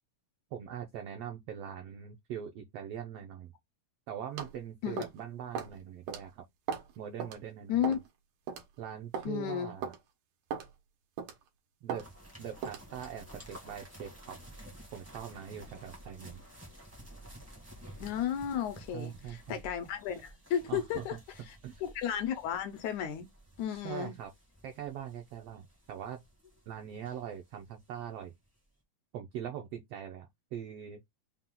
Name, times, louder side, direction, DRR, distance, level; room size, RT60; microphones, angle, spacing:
voice 1, 0.5-3.5 4.1-6.4 7.0-7.8 8.8-9.9 11.8-12.1 12.4-14.4 14.9-16.4 18.9-19.6 20.7-21.2 21.6-21.8 23.7-24.3 24.6-26.2 26.7-28.3 29.1-31.0, right 9 dB, 75° right, 1.5 m, -42 dB
sound 1, 4.4-4.6 5.0-5.2 5.5-5.7 6.1-6.2 6.7-6.9 7.2-7.4 7.8-8.1 8.5-8.6 9.1-9.3 9.8-10.0 10.5-10.7 11.2-11.4 11.9-12.1 12.6-12.9, right 6 dB, 90° right, 2.6 m, -37 dB
voice 2, 9.3-9.7 18.0-21.2 21.8-23.3 23.6-24.2, left 9 dB, 75° left, 2.1 m, -33 dB
sound 2, 11.9-28.1 28.4-28.5, right 1 dB, 15° right, 0.6 m, -53 dB
5.7 x 2.4 x 3.7 m
omnidirectional pair, 3.5 m